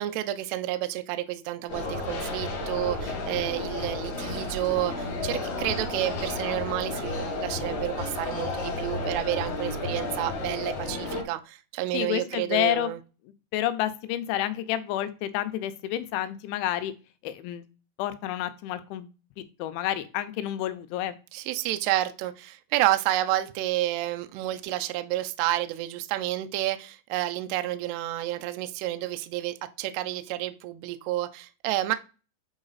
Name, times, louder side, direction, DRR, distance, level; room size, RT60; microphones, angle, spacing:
voice 1, 0.0-13.0 21.3-32.0, right 15 dB, 80° right, 9 dB, 2.5 m, -30 dB
sound 1, 1.7-11.2, left 2 dB, 55° left, 2.8 m, -32 dB
voice 2, 11.9-12.9 13.5-16.9 17.2-17.7 18.0-19.1 19.4-21.1, left 12 dB, 85° left, 12 dB, 3.1 m, -29 dB
8.3 x 4.9 x 4.0 m, 0.33 s
omnidirectional pair, 5.3 m